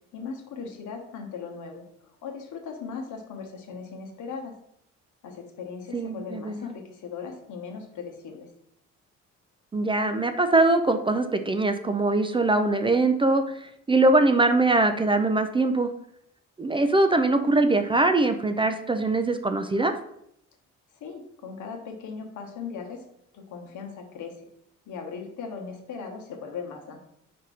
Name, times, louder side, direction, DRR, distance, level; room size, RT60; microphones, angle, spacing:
voice 1, 0.1-4.5 5.2-8.5 21.0-23.0 23.3-24.5 24.9-27.0, left 5 dB, 80° left, 3 dB, 1.0 m, -38 dB
voice 2, 5.9-6.7 9.7-15.9 16.6-19.9, right 2 dB, 20° right, 7 dB, 0.3 m, -22 dB
4.3 x 2.6 x 4.7 m, 0.73 s
cardioid pair, 90°, 30 cm